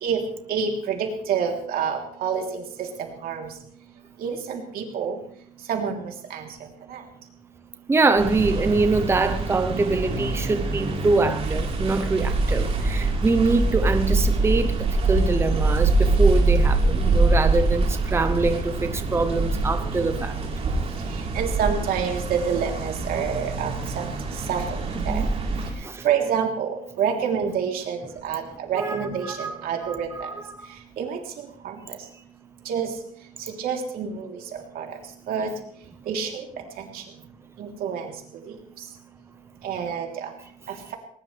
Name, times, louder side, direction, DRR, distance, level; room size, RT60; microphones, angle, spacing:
voice 1, 0.5-2.6 3.2-3.5 4.2-5.2 5.7-6.0 6.3-6.5 6.9-7.0 21.3-24.1 24.5-24.6 25.1-25.2 26.0-30.1 31.0-31.2 31.6-31.8 32.7-32.9 33.6-34.3 34.8-34.9 35.3-35.5 36.1-36.3 36.8-37.0 37.6-38.1 39.6-40.3, right 7 dB, 90° right, 2 dB, 3.5 m, -27 dB
voice 2, 7.9-20.4 24.9-25.3 25.8-26.1 28.7-29.5 29.9-30.7, right 3 dB, 15° right, 8 dB, 0.9 m, -24 dB
sound 1, 8.2-25.7, right 3 dB, 45° right, 4.1 m, -24 dB
20.0 x 19.5 x 3.4 m, 0.63 s
cardioid pair, 165°, 15 cm